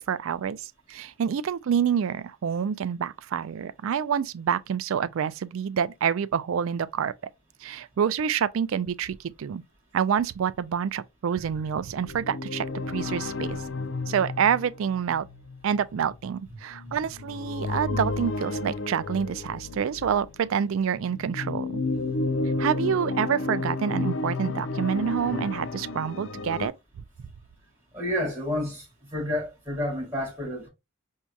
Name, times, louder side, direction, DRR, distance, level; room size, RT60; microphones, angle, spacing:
voice 1, 0.0-7.1 7.6-9.6 9.9-13.6 14.1-15.3 15.6-21.8 22.6-26.7, right 7 dB, 65° right, 0.3 m, -27 dB
sound 1, 11.9-20.4 21.0-26.7, left 3 dB, 55° left, 0.4 m, -32 dB
voice 2, 27.9-28.9 29.1-30.7, left 1 dB, 10° right, 2.4 m, -29 dB
4.5 x 2.7 x 2.3 m
head